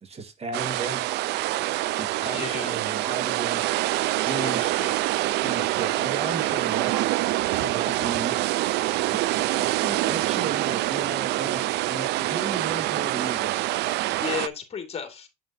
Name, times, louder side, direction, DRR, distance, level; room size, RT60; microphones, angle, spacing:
voice 1, 0.0-1.1 2.0-3.8 4.3-4.9 5.4-7.2 7.5-8.7 9.1-9.2 9.6-13.6, right 3 dB, 40° right, 1.7 m, -35 dB
sound 1, 0.5-14.5, right 17 dB, 80° right, 0.4 m, -25 dB
voice 2, 2.1-2.8 4.3-5.0 14.2-15.3, left 7 dB, 35° left, 2.4 m, -34 dB
sound 2, 2.7-3.1 3.7-4.0 4.9-5.3 6.2-6.3 6.6-7.0 7.8-9.0 9.4-9.5, right 3 dB, 5° right, 5.3 m, -46 dB
8.8 x 6.0 x 2.7 m
cardioid pair, 110°, 17 cm